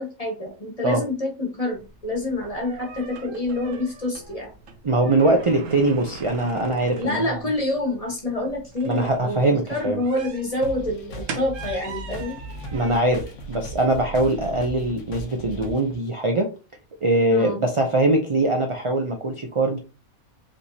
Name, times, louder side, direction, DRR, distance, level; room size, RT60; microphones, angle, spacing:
voice 1, 0.0-4.5 7.0-12.4 17.3-17.6, left 2 dB, 25° left, 1 dB, 1.3 m, -27 dB
sound 1, 1.7-15.6, right 4 dB, 65° right, 1.2 m, -42 dB
voice 2, 4.8-7.4 8.9-10.0 12.7-16.5 17.0-19.8, right 2 dB, 45° right, 3 dB, 0.4 m, -22 dB
sound 2, 10.6-16.0, right 1 dB, 60° left, 1.2 m, -37 dB
5.1 x 3.3 x 2.8 m, 0.31 s
omnidirectional pair, 1.5 m